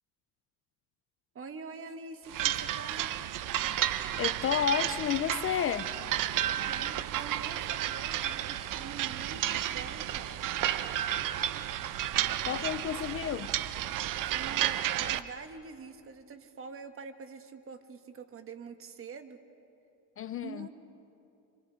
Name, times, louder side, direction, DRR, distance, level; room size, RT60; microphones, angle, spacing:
voice 1, 1.3-3.3 6.4-10.5 14.2-19.4 20.4-20.7, right 4 dB, 30° right, 7 dB, 1.4 m, -45 dB
sound 1, 2.3-15.2, right 12 dB, 50° right, 0.8 m, -32 dB
voice 2, 4.2-5.9 12.5-13.5 20.2-20.7, left 9 dB, 35° left, 13 dB, 0.5 m, -31 dB
26.0 x 26.0 x 5.1 m, 2.7 s
cardioid pair, 125°, 41 cm